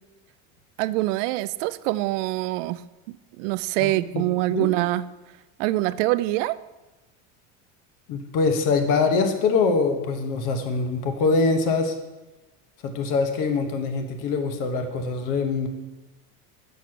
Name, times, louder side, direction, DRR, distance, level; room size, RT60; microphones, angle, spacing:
voice 1, 0.8-2.8 3.4-5.0 5.6-6.6, right 18 dB, 80° right, 16 dB, 0.5 m, -24 dB
voice 2, 3.8-4.2 4.5-4.7 8.1-11.9 12.8-15.7, left 4 dB, 60° left, 6 dB, 1.2 m, -23 dB
7.1 x 6.2 x 5.8 m, 1.1 s
supercardioid pair, 130°, 36 cm